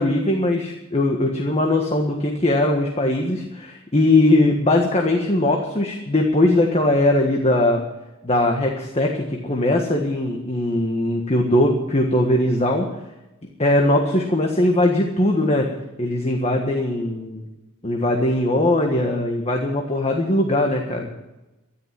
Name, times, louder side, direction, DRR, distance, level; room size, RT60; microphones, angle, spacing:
voice 1, 0.0-7.8 8.2-12.9 13.6-15.7 16.0-17.5 17.8-21.1, left 1 dB, 30° left, 1 dB, 1.6 m, -20 dB
13.0 x 11.5 x 7.6 m, 0.98 s
head